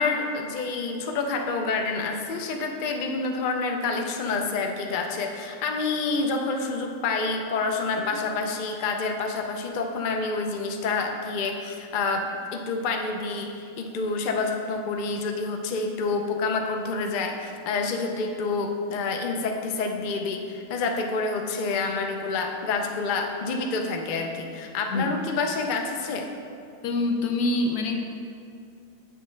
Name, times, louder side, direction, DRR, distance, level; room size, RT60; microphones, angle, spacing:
voice 1, 0.0-26.3, left 4 dB, 55° left, 3 dB, 0.5 m, -28 dB
voice 2, 26.8-28.0, left 2 dB, 80° left, 4 dB, 1.2 m, -25 dB
8.5 x 6.7 x 3.2 m, 2.4 s
omnidirectional pair, 1.6 m